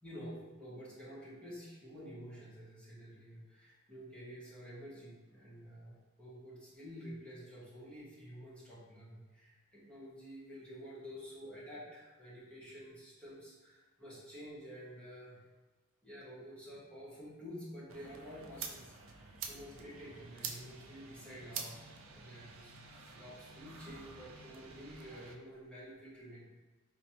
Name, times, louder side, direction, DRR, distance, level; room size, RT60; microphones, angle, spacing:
voice 1, 0.0-15.4 16.0-26.6, equal, 5° left, -9 dB, 1.0 m, -50 dB
sound 1, 17.9-25.3, right 5 dB, 65° right, 0.4 m, -48 dB
4.1 x 2.1 x 2.8 m, 1.2 s
head